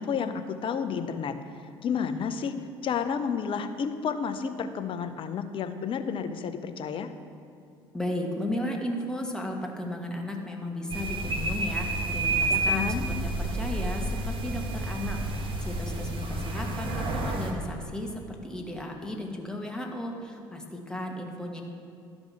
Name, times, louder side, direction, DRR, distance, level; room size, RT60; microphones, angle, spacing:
voice 1, 0.0-1.3 1.8-7.1 12.5-13.1, left 6 dB, 40° left, 9 dB, 0.8 m, -31 dB
voice 2, 7.9-21.6, left 1 dB, 5° left, 1 dB, 1.7 m, -35 dB
sound 1, 10.9-17.5, right 2 dB, 45° right, 1.5 m, -30 dB
12.0 x 5.3 x 6.1 m, 2.5 s
figure-of-eight pair, 60°, 13 cm